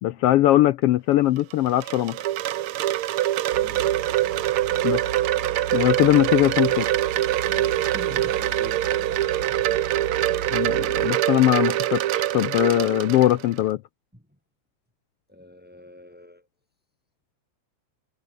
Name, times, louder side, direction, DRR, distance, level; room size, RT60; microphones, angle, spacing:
voice 1, 0.0-2.2 4.8-5.0 5.7-6.9 10.5-13.8, left 14 dB, 80° left, 1.3 m, -20 dB
Wind chime, 1.4-13.6, right 14 dB, 75° right, 1.3 m, -24 dB
voice 2, 3.5-3.9 7.5-10.5 14.1-14.4 15.3-16.5, equal, 5° right, 4.8 m, -46 dB
sound 1, 3.5-11.1, right 6 dB, 40° right, 3.0 m, -37 dB
omnidirectional pair, 3.3 m